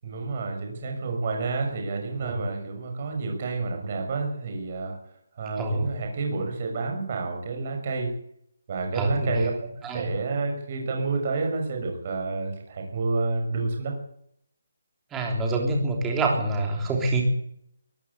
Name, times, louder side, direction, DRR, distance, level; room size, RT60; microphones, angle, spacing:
voice 1, 0.0-5.0 5.4-8.1 8.7-9.5 9.9-13.9, right 3 dB, 25° right, 3 dB, 6.2 m, -29 dB
voice 2, 8.9-9.4 9.8-10.1 15.1-17.2, right 2 dB, 5° right, 1 dB, 3.3 m, -26 dB
23.0 x 15.0 x 8.3 m, 0.72 s
hypercardioid pair, 180°, 0 cm